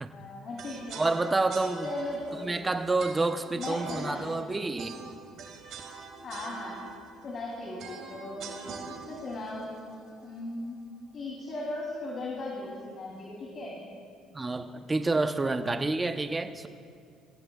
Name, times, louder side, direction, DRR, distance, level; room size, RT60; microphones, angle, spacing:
voice 1, 0.1-1.0 1.8-2.6 3.5-4.6 6.2-6.8 7.2-8.6 8.9-9.8 10.2-10.8 11.1-13.8, left 2 dB, 50° left, -3 dB, 3.2 m, -37 dB
sound 1, 0.6-10.7, right 5 dB, 65° right, 2.1 m, -44 dB
voice 2, 1.0-1.9 2.4-5.0 14.3-16.7, right 3 dB, 20° right, 8 dB, 0.9 m, -28 dB
27.0 x 16.0 x 2.4 m, 2.2 s
supercardioid pair, 80°, 0 cm